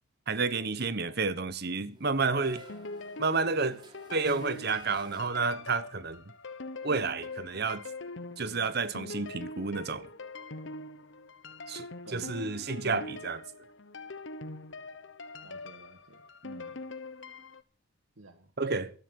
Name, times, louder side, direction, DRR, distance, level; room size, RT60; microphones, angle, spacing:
voice 1, 0.3-2.6 3.2-3.8 4.1-6.2 6.8-7.8 8.4-10.1 11.7-11.9 12.1-13.4 18.6-18.9, right 4 dB, 55° right, 1.2 m, -30 dB
sound 1, 1.9-5.8, right 2 dB, 25° right, 4.3 m, -55 dB
sound 2, 2.3-17.6, left 2 dB, 65° left, 1.2 m, -43 dB
voice 2, 12.0-12.4 15.4-16.8 18.2-18.5, right 1 dB, 80° right, 1.9 m, -53 dB
16.5 x 13.0 x 6.4 m
head